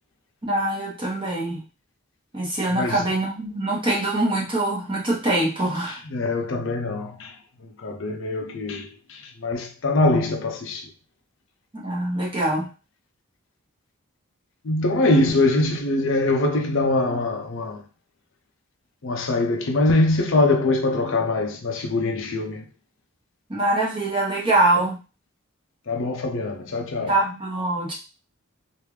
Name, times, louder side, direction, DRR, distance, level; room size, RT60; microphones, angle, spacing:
voice 1, 0.4-1.6 2.3-6.0 11.7-12.7 23.5-25.0 27.1-27.9, right 2 dB, 25° right, 1.1 m, -23 dB
voice 2, 6.1-7.3 7.8-10.8 14.6-17.8 19.0-22.6 25.9-27.1, left 2 dB, 60° left, 0.5 m, -23 dB
3.2 x 2.5 x 3.2 m
head